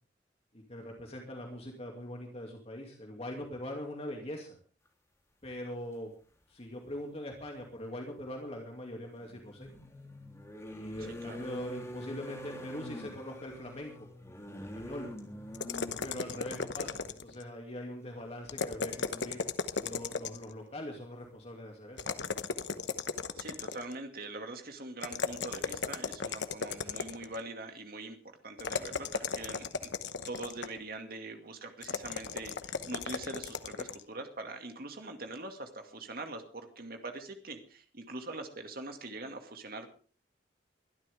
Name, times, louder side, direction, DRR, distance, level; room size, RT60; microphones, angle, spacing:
voice 1, 0.5-4.6 5.4-6.1 6.5-9.7 10.7-14.1 14.6-15.1 16.0-19.4 19.8-22.1, left 1 dB, 35° left, 1 dB, 2.5 m, -42 dB
sound 1, 6.9-7.0 9.2-16.9 18.0-18.2 18.5-18.7, left 1 dB, 15° left, 3.3 m, -45 dB
voice 2, 11.0-11.4 23.4-28.2 28.4-29.9 30.2-39.9, right 2 dB, 55° right, 5 dB, 2.3 m, -43 dB
sound 2, 15.5-17.4 18.5-20.5 22.0-24.0 25.0-27.4 28.6-30.8 31.8-34.0, left 5 dB, 80° left, 1.1 m, -36 dB
22.5 x 12.5 x 3.6 m, 0.39 s
head